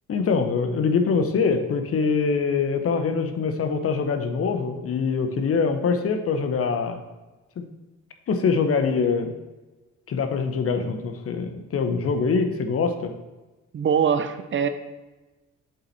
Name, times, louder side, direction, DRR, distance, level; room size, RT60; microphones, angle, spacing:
voice 1, 0.1-7.0 7.6-7.7 8.3-9.3 10.1-13.1, left 5 dB, 50° left, 7 dB, 0.8 m, -24 dB
voice 2, 13.7-14.7, right 7 dB, 40° right, 10 dB, 0.5 m, -22 dB
7.6 x 4.1 x 4.2 m, 1.1 s
cardioid pair, 90°, 30 cm